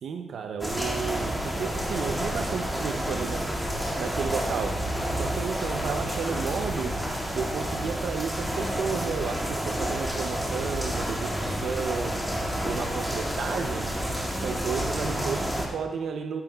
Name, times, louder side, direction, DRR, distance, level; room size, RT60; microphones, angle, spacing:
voice 1, 0.0-3.5 4.0-4.9 5.1-7.0 7.3-12.2 12.6-13.9 14.3-16.4, right 6 dB, 75° right, 5 dB, 0.5 m, -32 dB
sound 1, 0.6-15.7, equal, ahead, 2.0 m, -30 dB
sound 2, 1.2-7.7, right 1 dB, 35° right, 3.5 m, -40 dB
12.5 x 11.5 x 2.3 m, 1.2 s
cardioid pair, 115°, 0 cm